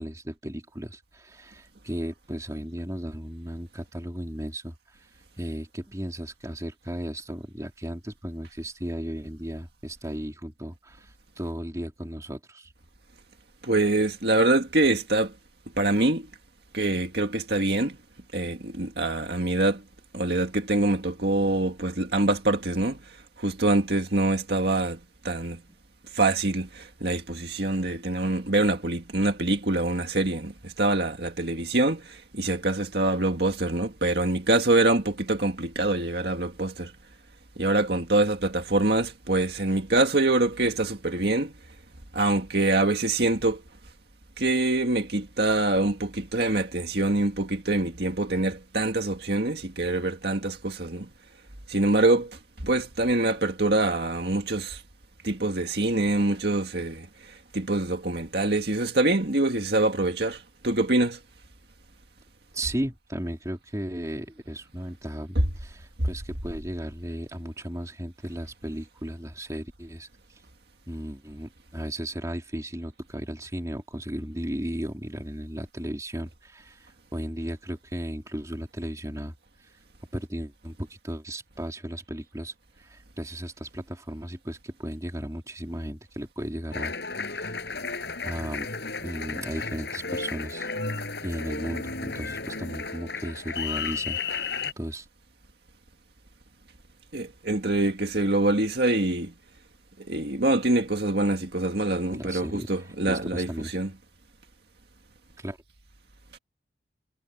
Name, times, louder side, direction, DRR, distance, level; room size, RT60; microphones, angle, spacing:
voice 1, 0.0-4.7 5.4-11.1 11.4-12.7 25.7-25.8 62.5-70.1 70.9-79.3 80.1-82.5 82.8-86.9 87.3-87.5 87.9-88.7 89.0-91.0 91.2-95.1 102.1-102.7 103.1-103.8 105.4-105.6, equal, 15° right, 3.5 m, -35 dB
voice 2, 13.6-15.3 15.8-16.2 16.7-18.0 18.3-19.8 20.1-23.0 23.4-25.0 25.2-25.6 26.1-36.9 37.6-41.5 42.1-43.6 44.4-51.1 51.7-52.4 52.6-54.8 55.2-61.2 97.1-99.3 100.1-103.9, right 2 dB, 55° right, 2.0 m, -25 dB
Applause, 86.7-94.7, left 4 dB, 60° left, 7.8 m, -33 dB
head